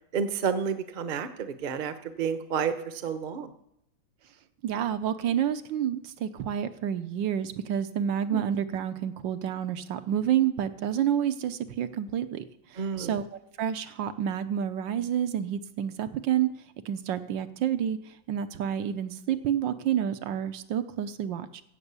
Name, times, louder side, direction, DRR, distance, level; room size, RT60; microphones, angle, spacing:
voice 1, 0.1-3.5 8.3-8.4 12.8-13.1, right 6 dB, 40° right, 10 dB, 0.8 m, -30 dB
voice 2, 4.6-13.2 13.6-16.5 16.8-21.6, right 9 dB, 75° right, 11 dB, 1.5 m, -29 dB
15.0 x 6.4 x 8.2 m, 0.80 s
omnidirectional pair, 2.0 m